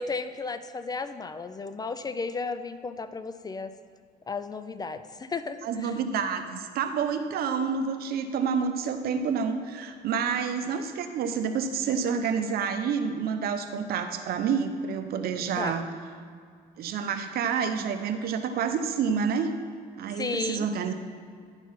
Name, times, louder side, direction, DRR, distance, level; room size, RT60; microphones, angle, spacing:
voice 1, 0.0-3.7 4.3-5.9 15.5-15.8 20.2-20.7, left 4 dB, 25° left, 10 dB, 0.4 m, -34 dB
voice 2, 5.6-15.9 16.8-19.5 20.0-20.9, right 6 dB, 65° right, 8 dB, 0.7 m, -28 dB
10.5 x 4.6 x 5.5 m, 2.1 s
cardioid pair, 110°, 17 cm